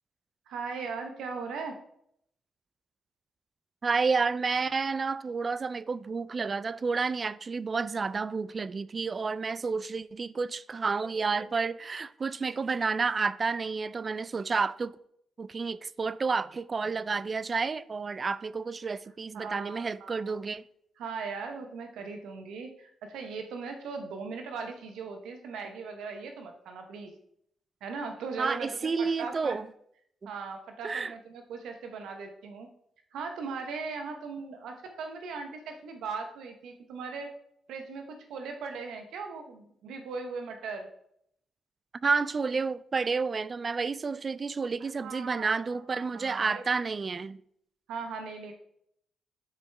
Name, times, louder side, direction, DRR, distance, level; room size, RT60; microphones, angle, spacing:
voice 1, 0.5-1.8 19.3-20.4 21.0-27.1 27.8-29.6 30.2-32.7 33.1-37.3 37.7-40.9 44.8-46.6 47.9-48.5, right 4 dB, 85° right, 0.8 m, -39 dB
voice 2, 3.8-14.9 15.4-20.6 28.4-29.7 30.2-30.3 30.8-31.1 42.0-47.4, right 4 dB, 40° right, 0.3 m, -30 dB
9.5 x 4.7 x 3.3 m
cardioid pair, 85°, 0 cm